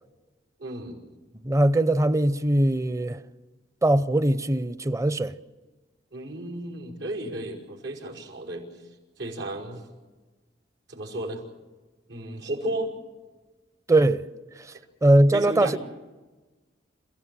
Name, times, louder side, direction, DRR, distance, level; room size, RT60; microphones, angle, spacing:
voice 1, 0.6-1.0 6.1-8.8 9.2-9.8 10.9-11.4 12.1-12.9 14.7-14.8 15.3-15.8, right 1 dB, 85° right, 5.4 m, -33 dB
voice 2, 1.4-3.2 3.8-5.4 13.9-14.2 15.0-15.8, right 1 dB, 15° right, 0.7 m, -21 dB
28.5 x 16.0 x 7.6 m
head